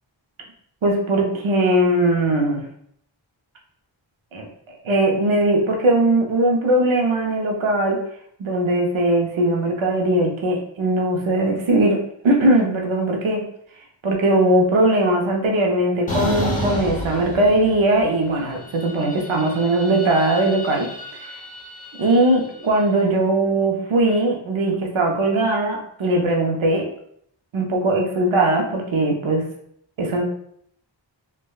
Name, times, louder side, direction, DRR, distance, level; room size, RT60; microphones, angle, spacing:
voice 1, 0.8-2.6 4.3-4.5 4.8-8.0 8.4-12.0 12.2-13.4 14.0-20.9 22.0-26.8 27.5-29.4 30.0-30.2, right 1 dB, 85° right, 0 dB, 0.6 m, -19 dB
sound 1, 16.1-18.0 18.4-22.7, left 1 dB, 15° left, 0.7 m, -31 dB
3.3 x 2.1 x 2.3 m, 0.68 s
wide cardioid pair, 55°, 46 cm